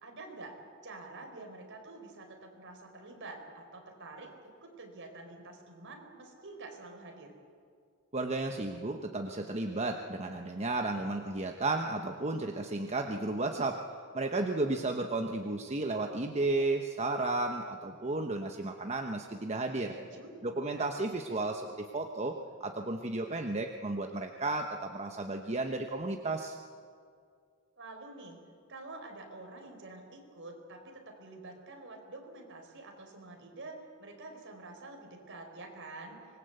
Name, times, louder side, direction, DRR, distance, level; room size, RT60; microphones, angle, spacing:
voice 1, 0.0-7.3 19.9-20.9 27.8-28.4 28.7-36.2, right 2 dB, 55° right, 3 dB, 4.7 m, -48 dB
voice 2, 8.1-13.8 14.1-19.9 20.4-26.6, right 2 dB, 30° right, 4 dB, 1.1 m, -33 dB
25.0 x 21.0 x 8.1 m, 2.2 s
head